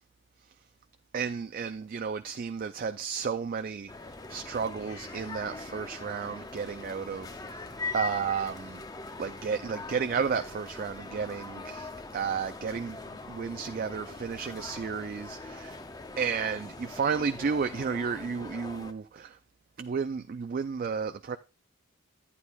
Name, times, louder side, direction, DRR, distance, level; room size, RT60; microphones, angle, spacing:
voice 1, 1.1-3.9 4.3-8.8 9.2-13.0 13.3-15.8 16.2-19.4 19.8-21.4, right 6 dB, 40° right, 0.3 m, -32 dB
sound 1, 3.9-18.9, left 3 dB, 15° left, 0.5 m, -42 dB
sound 2, 4.9-9.9, left 3 dB, 85° left, 2.3 m, -57 dB
10.5 x 9.7 x 2.3 m
head